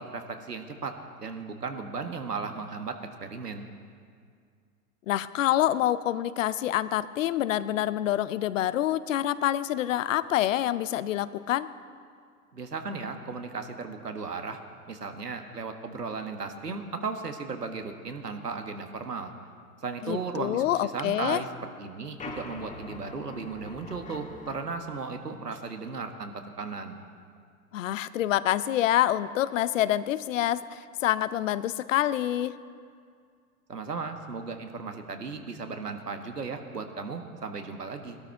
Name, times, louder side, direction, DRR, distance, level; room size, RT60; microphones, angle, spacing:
voice 1, 0.0-3.7 12.5-14.6 14.9-19.3 19.8-21.5 21.8-26.3 26.6-27.0 33.7-38.2, right 4 dB, 85° right, 6 dB, 1.6 m, -36 dB
voice 2, 5.1-11.7 20.0-21.4 27.7-32.6, left 12 dB, 55° left, 16 dB, 0.7 m, -27 dB
sound 1, 22.2-24.6, left 3 dB, 15° left, 1.5 m, -42 dB
20.5 x 12.5 x 4.6 m, 2.2 s
figure-of-eight pair, 100°, 47 cm